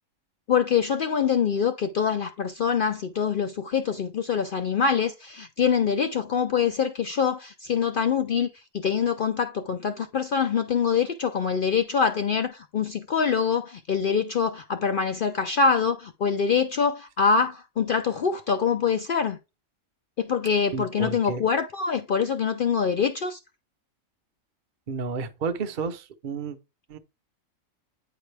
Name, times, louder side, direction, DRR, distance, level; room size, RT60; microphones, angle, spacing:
voice 1, 0.5-19.4 20.2-23.4, left 6 dB, 65° left, 0.5 m, -24 dB
voice 2, 20.7-21.4 24.9-26.6 26.9-27.0, right 4 dB, 45° right, 0.8 m, -31 dB
9.0 x 4.6 x 3.3 m
omnidirectional pair, 1.4 m